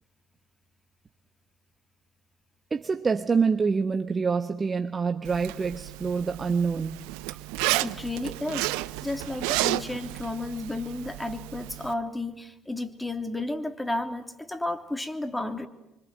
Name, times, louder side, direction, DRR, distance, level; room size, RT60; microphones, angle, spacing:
voice 1, 2.7-7.0, right 5 dB, 30° right, 6 dB, 1.4 m, -26 dB
Zipper (clothing), 5.2-11.9, right 19 dB, 75° right, 0.9 m, -32 dB
voice 2, 7.8-8.7 9.0-15.7, left 2 dB, 10° left, 8 dB, 3.1 m, -32 dB
25.5 x 25.0 x 7.7 m, 0.95 s
hypercardioid pair, 60°, 0 cm